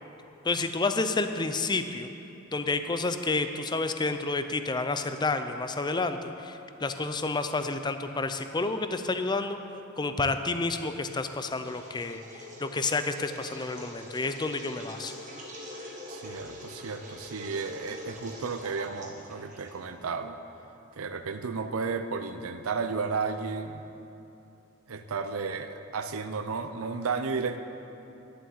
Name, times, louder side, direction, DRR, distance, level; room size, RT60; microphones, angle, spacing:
voice 1, 0.4-2.1 2.5-9.6 10.0-12.2 12.6-15.1, left 3 dB, 20° left, 9 dB, 0.5 m, -30 dB
sound 1, 11.5-20.0, equal, 35° right, 1.6 m, -44 dB
voice 2, 16.1-20.4 20.9-23.8 24.9-27.6, right 4 dB, 85° right, 9 dB, 0.6 m, -33 dB
11.0 x 7.5 x 8.5 m, 2.9 s
head